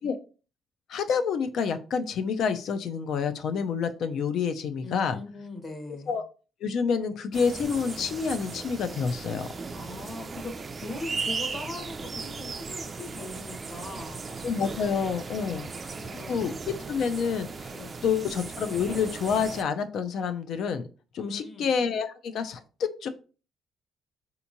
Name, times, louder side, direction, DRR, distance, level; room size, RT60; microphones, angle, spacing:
voice 1, 0.9-5.2 6.1-6.2 6.6-9.5 14.4-15.6 16.3-17.7 18.0-20.8 21.1-23.1, left 6 dB, 70° left, 9 dB, 0.4 m, -28 dB
voice 2, 4.8-6.2 9.7-10.5 10.8-14.3 15.3-16.4 17.7-18.0 21.2-21.7, left 2 dB, 45° left, 4 dB, 1.0 m, -41 dB
sound 1, 7.3-19.6, right 4 dB, 40° right, 0.4 m, -37 dB
3.5 x 2.9 x 2.5 m, 0.36 s
cardioid pair, 90°, 0 cm